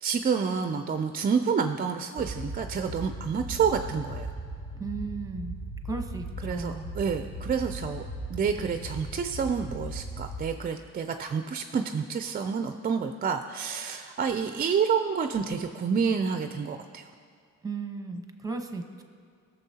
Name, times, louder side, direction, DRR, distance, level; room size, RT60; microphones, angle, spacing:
voice 1, 0.0-4.3 6.4-8.0 8.3-17.1, right 6 dB, 30° right, 7 dB, 0.4 m, -29 dB
sound 1, 2.2-10.4, right 1 dB, 55° left, 2.3 m, -38 dB
voice 2, 4.7-5.6 5.8-7.0 17.6-19.0, right 4 dB, 10° right, 5 dB, 1.0 m, -35 dB
17.5 x 6.8 x 2.8 m, 2.2 s
cardioid pair, 90°, 30 cm